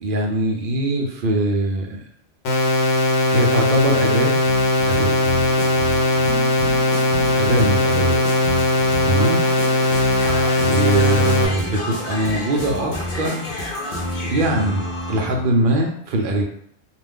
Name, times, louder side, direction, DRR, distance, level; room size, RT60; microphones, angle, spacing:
voice 1, 0.0-2.0 3.3-4.3 4.9-5.2 7.4-8.5 9.0-9.4 10.6-13.5 13.9-14.8 15.1-16.4, right 1 dB, 60° right, 1 dB, 0.6 m, -22 dB
sound 1, 2.4-11.4, left 2 dB, 85° left, 0.9 m, -19 dB
sound 2, 4.4-15.5, left 1 dB, 55° left, 0.6 m, -29 dB
2.5 x 2.2 x 3.4 m, 0.69 s
omnidirectional pair, 1.2 m